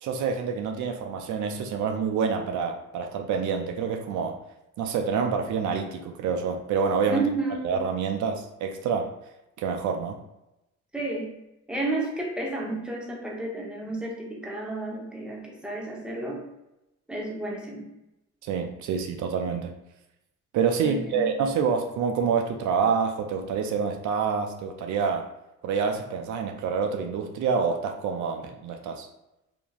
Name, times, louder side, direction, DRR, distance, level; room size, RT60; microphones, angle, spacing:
voice 1, 0.0-4.4 4.8-7.2 7.6-9.1 9.6-10.2 18.4-19.7 20.5-25.3 25.6-29.1, right 6 dB, 75° right, 3 dB, 0.4 m, -27 dB
voice 2, 7.1-7.8 10.9-11.3 11.7-16.4 17.1-17.9 20.8-21.3, right 2 dB, 5° right, -2 dB, 0.8 m, -31 dB
2.9 x 2.5 x 2.3 m, 0.91 s
cardioid pair, 90°, 30 cm